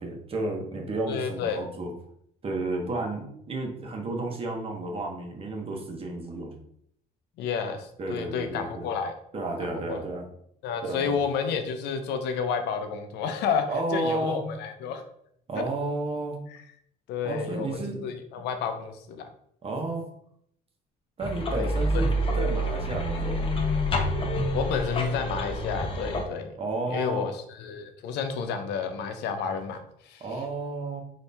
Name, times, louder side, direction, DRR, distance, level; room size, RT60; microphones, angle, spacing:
voice 1, 0.0-1.9 2.4-6.5 8.0-8.9 9.3-10.2 10.8-11.1 13.7-14.4 15.5-16.4 17.2-18.0 19.6-20.0 21.2-22.1 22.4-23.5 26.6-27.3 30.2-31.0, right 2 dB, 35° right, 2 dB, 1.0 m, -32 dB
voice 2, 1.1-1.6 7.4-9.1 9.6-10.0 10.6-15.0 15.5-15.6 16.5-16.6 17.1-19.3 21.5-22.0 24.5-26.6 26.9-30.4, left 6 dB, 80° left, 7 dB, 0.6 m, -31 dB
sound 1, 21.2-26.2, equal, 30° left, 0.7 m, -27 dB
4.1 x 2.8 x 3.4 m, 0.69 s
cardioid pair, 110°, 17 cm